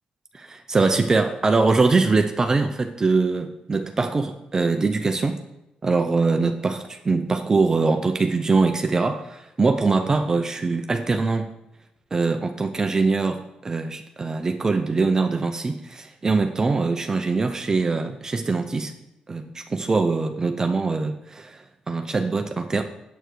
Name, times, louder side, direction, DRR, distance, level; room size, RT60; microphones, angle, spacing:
voice 1, 0.3-5.4 5.8-11.5 12.1-18.9 19.3-22.8, right 3 dB, 25° right, 6 dB, 0.6 m, -23 dB
8.9 x 7.9 x 4.7 m, 0.93 s
cardioid pair, 135°, 2 cm